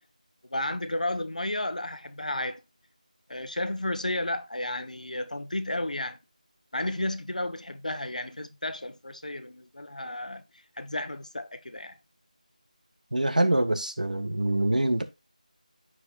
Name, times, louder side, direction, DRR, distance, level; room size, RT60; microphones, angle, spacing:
voice 1, 0.5-2.6 3.3-6.2 6.7-10.4 10.8-11.9, left 1 dB, 70° left, 1.1 m, -32 dB
voice 2, 13.1-15.0, right 1 dB, 80° right, 1.6 m, -25 dB
13.5 x 5.1 x 2.5 m
figure-of-eight pair, 180°, 4 cm